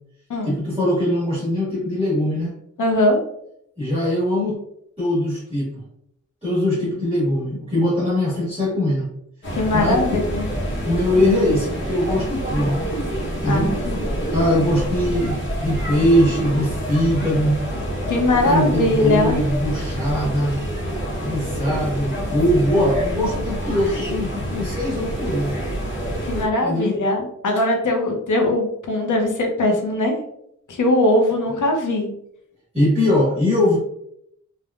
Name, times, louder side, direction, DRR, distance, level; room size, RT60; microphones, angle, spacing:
voice 1, 0.4-2.5 3.8-4.6 5.0-5.8 6.4-9.1 9.7-10.2 10.8-12.8 13.4-13.7 14.3-17.6 18.4-20.6 21.2-25.6 26.6-27.0 32.7-33.8, left 1 dB, 20° right, -9 dB, 1.3 m, -21 dB
voice 2, 2.8-3.2 9.5-10.5 13.4-14.1 18.1-19.4 26.2-30.1 30.7-32.1, left 1 dB, 90° left, 2 dB, 0.7 m, -20 dB
sound 1, 9.4-26.5, equal, 40° left, 0.9 m, -27 dB
3.3 x 2.2 x 2.3 m, 0.74 s
wide cardioid pair, 120°, 30 cm